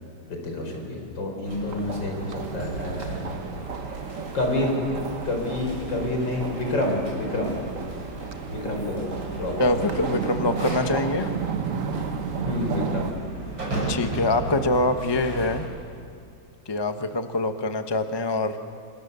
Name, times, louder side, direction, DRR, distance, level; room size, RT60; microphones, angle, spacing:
voice 1, 0.3-3.2 4.3-4.8 5.3-7.5 8.5-9.1 9.4-9.9 12.4-13.1, left 2 dB, 70° left, 2 dB, 5.2 m, -28 dB
sound 1, 1.4-15.7, right 2 dB, 85° right, 6.4 m, -35 dB
sound 2, 1.7-13.1, right 6 dB, 50° right, 1.3 m, -33 dB
voice 2, 9.6-11.3 13.9-15.7 16.7-18.6, left 2 dB, 20° left, 7 dB, 0.8 m, -24 dB
27.0 x 26.5 x 6.9 m, 2.3 s
omnidirectional pair, 2.1 m